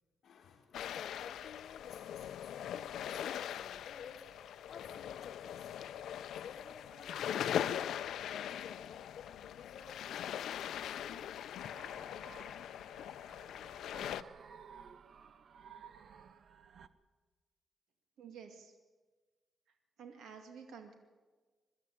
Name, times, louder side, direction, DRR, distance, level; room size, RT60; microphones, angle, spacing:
voice 1, 0.2-6.1 6.4-9.3 9.6-11.5, left 6 dB, 65° left, 2 dB, 1.5 m, -54 dB
sound 1, 0.7-14.2, left 10 dB, 90° left, 0.6 m, -41 dB
sound 2, 11.6-16.9, right 7 dB, 55° right, 0.8 m, -56 dB
voice 2, 18.2-18.7 19.7-20.9, right 6 dB, 90° right, 5 dB, 2.2 m, -51 dB
23.0 x 12.5 x 9.3 m, 1.3 s
cardioid pair, 125°, 0 cm